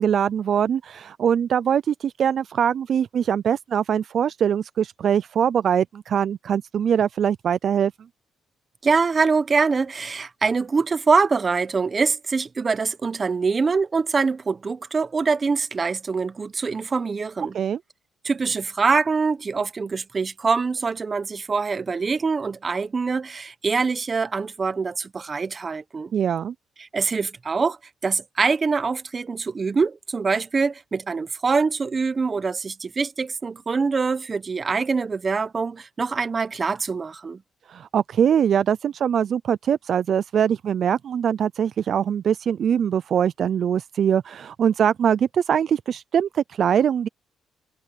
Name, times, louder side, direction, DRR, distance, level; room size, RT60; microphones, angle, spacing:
voice 1, 0.0-7.9 17.5-17.8 26.1-26.5 37.7-47.1, right 8 dB, 60° right, 0.4 m, -22 dB
voice 2, 8.8-17.6 18.2-26.1 26.8-27.8 28.0-37.4, right 4 dB, 35° right, 1.2 m, -24 dB
cardioid pair, 90°, 0 cm